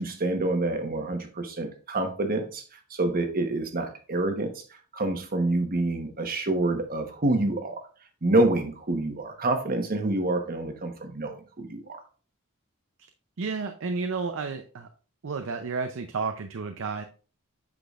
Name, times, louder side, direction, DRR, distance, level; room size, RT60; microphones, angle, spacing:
voice 1, 0.0-2.6 2.9-4.6 4.9-7.8 8.2-12.0, right 2 dB, 40° right, 6 dB, 1.1 m, -27 dB
voice 2, 13.4-14.9 15.2-17.0, right 4 dB, 60° right, 6 dB, 0.6 m, -31 dB
8.4 x 5.9 x 2.4 m, 0.38 s
head